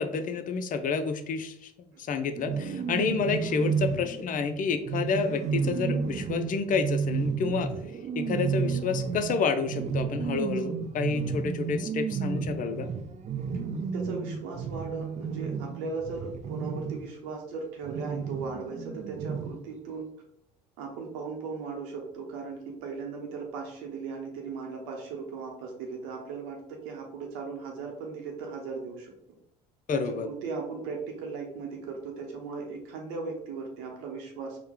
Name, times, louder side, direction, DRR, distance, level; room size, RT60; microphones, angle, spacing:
voice 1, 0.0-7.7 8.2-12.9 29.9-30.3, left 5 dB, 40° left, 9 dB, 0.5 m, -29 dB
sound 1, 2.4-17.1 17.8-19.7, right 6 dB, 35° right, 0.4 m, -32 dB
voice 2, 13.9-20.1 20.8-29.1 29.9-34.6, right 4 dB, 70° right, 1 dB, 0.8 m, -37 dB
4.2 x 2.2 x 3.5 m, 0.75 s
hypercardioid pair, 60°, 21 cm